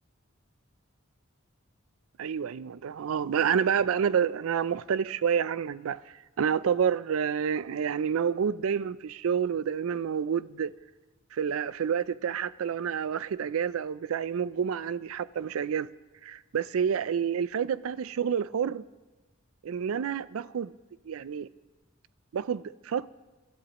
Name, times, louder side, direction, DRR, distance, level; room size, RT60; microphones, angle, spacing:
voice 1, 2.2-6.0 6.4-10.7 11.3-15.9 16.2-18.8 19.6-20.7 21.1-21.5 22.3-23.1, right 7 dB, 75° right, 0.4 m, -28 dB
26.0 x 12.0 x 3.0 m
head